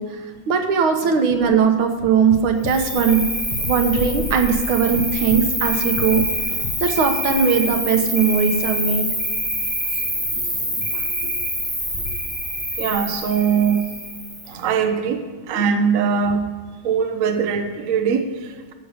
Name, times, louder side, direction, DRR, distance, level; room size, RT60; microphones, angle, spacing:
voice 1, 0.0-3.3 3.7-6.3 6.8-9.1 15.6-15.7, right 6 dB, 80° right, 5 dB, 1.9 m, -19 dB
sound 1, 2.3-4.7 5.0-7.3, left 4 dB, 65° left, 0.5 m, -32 dB
Cricket, 2.6-14.6, equal, 5° left, 2.5 m, -26 dB
voice 2, 10.8-11.4 12.8-13.9 14.5-15.2 15.5-16.5 16.8-18.7, right 6 dB, 55° right, 7 dB, 1.0 m, -22 dB
14.5 x 6.3 x 5.1 m, 1.5 s
omnidirectional pair, 2.2 m